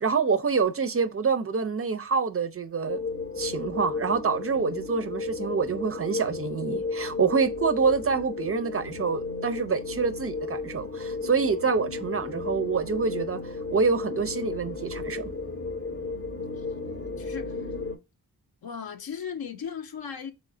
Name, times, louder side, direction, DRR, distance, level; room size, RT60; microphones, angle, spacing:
voice 1, 0.0-3.0 3.4-15.3, right 5 dB, 35° right, 0.4 m, -26 dB
sound 1, 2.9-18.0, left 3 dB, 30° left, 0.7 m, -34 dB
voice 2, 17.2-17.6 18.6-20.3, left 7 dB, 65° left, 0.7 m, -36 dB
3.2 x 3.0 x 3.7 m
cardioid pair, 60°, 39 cm